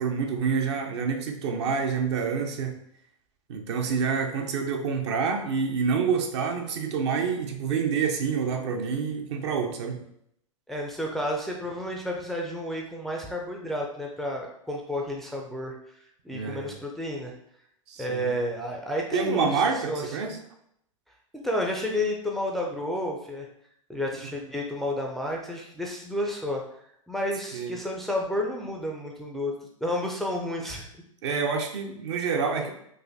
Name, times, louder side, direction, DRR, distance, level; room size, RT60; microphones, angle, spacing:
voice 1, 0.0-2.8 3.5-10.0 16.3-16.8 17.9-18.3 19.1-20.4 27.5-27.7 31.2-32.7, right 5 dB, 55° right, 4 dB, 0.6 m, -27 dB
voice 2, 10.7-15.8 16.2-17.3 18.0-19.6 19.9-20.4 21.3-23.5 23.9-26.6 27.1-30.9, left 1 dB, ahead, -1 dB, 0.4 m, -31 dB
4.0 x 2.6 x 2.6 m, 0.71 s
figure-of-eight pair, 95°, 17 cm